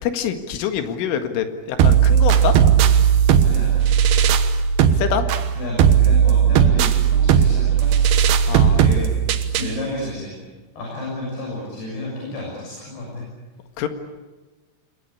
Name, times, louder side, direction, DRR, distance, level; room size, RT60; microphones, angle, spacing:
voice 1, 0.0-2.5 4.8-5.3 8.5-9.1 13.8-13.9, left 8 dB, 80° left, 7 dB, 4.3 m, -25 dB
sound 1, 1.8-9.8, right 8 dB, 70° right, 2.7 m, -16 dB
voice 2, 3.4-3.8 5.6-8.0 8.6-9.0 9.3-10.4 10.8-13.3, left 1 dB, 55° left, -3 dB, 8.7 m, -31 dB
28.5 x 22.5 x 8.6 m, 1.3 s
omnidirectional pair, 5.6 m